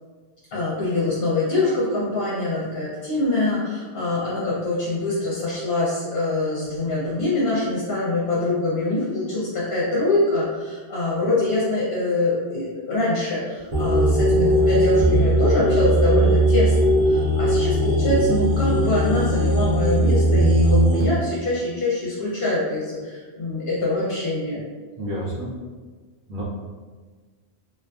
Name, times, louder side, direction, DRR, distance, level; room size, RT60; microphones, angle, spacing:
voice 1, 0.5-16.7 17.0-24.6, left 2 dB, 60° left, -7 dB, 0.7 m, -24 dB
sound 1, 13.7-21.0, right 1 dB, 45° right, 0.5 m, -19 dB
voice 2, 25.0-25.5 26.3-26.4, equal, 75° right, -8 dB, 0.9 m, -29 dB
2.4 x 2.2 x 2.2 m, 1.4 s
omnidirectional pair, 1.1 m